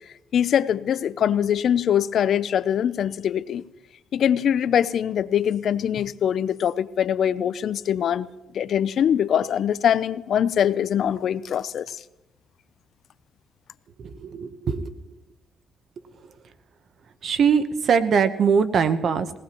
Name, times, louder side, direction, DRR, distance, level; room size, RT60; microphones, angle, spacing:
voice 1, 0.3-3.6 4.1-8.3 8.5-11.9, left 9 dB, 65° left, 0.5 m, -23 dB
voice 2, 14.0-14.9 17.2-19.4, right 6 dB, 60° right, 0.9 m, -22 dB
20.5 x 17.5 x 3.0 m
cardioid pair, 90°, 0 cm